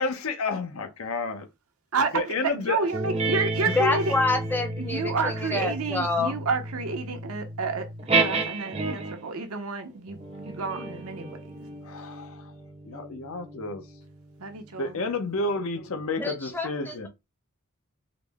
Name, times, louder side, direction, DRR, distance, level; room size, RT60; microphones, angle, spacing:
voice 1, 0.0-1.4 2.1-2.8 11.8-12.4 12.9-13.8 14.8-17.1, left 3 dB, 70° left, 0.7 m, -30 dB
voice 2, 1.9-4.1 4.8-11.8 14.4-15.0, right 4 dB, 75° right, 0.8 m, -30 dB
sound 1, 2.9-9.3 10.1-15.0, right 3 dB, 30° right, 0.7 m, -32 dB
voice 3, 3.7-6.4 16.2-17.1, left 2 dB, 10° left, 0.7 m, -27 dB
4.0 x 2.1 x 3.4 m
head